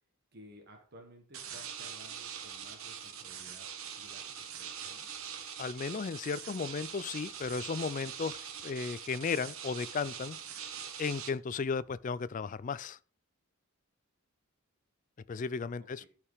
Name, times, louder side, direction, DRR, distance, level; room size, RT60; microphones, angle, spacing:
voice 1, 0.3-3.7 4.0-4.2 4.5-5.1 15.8-16.1, equal, 50° right, 1.6 m, -55 dB
sound 1, 1.3-11.3, right 8 dB, 75° right, 1.2 m, -43 dB
voice 2, 5.6-8.4 8.6-10.4 11.0-13.0 15.3-16.0, left 5 dB, 35° left, 0.3 m, -35 dB
11.5 x 4.9 x 4.9 m
head